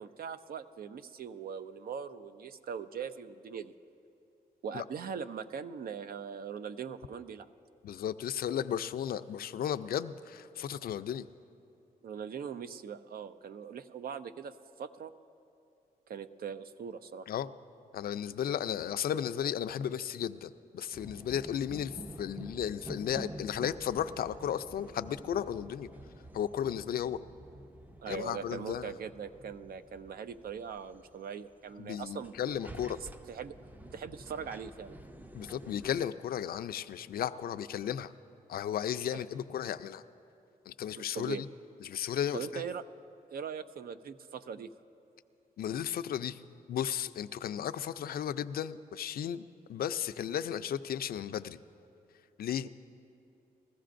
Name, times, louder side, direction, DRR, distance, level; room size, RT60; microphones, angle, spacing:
voice 1, 0.0-3.7 4.6-7.5 12.0-15.1 16.1-17.3 28.0-32.6 33.0-33.5 33.9-34.9 39.1-39.2 41.0-41.4 42.3-42.8 43.3-44.7, right 7 dB, 65° right, 11 dB, 0.5 m, -41 dB
voice 2, 7.8-11.3 17.3-17.5 17.9-25.9 26.3-27.2 28.1-28.9 31.8-33.0 35.3-38.1 38.5-40.0 40.7-41.5 41.8-42.6 45.6-46.4 46.7-49.4 49.7-51.6 52.4-52.7, left 9 dB, 70° left, 12 dB, 0.4 m, -34 dB
sound 1, 20.9-36.0, right 1 dB, 10° right, 0.5 m, -49 dB
21.0 x 14.5 x 2.5 m, 2.7 s
cardioid pair, 80°, 16 cm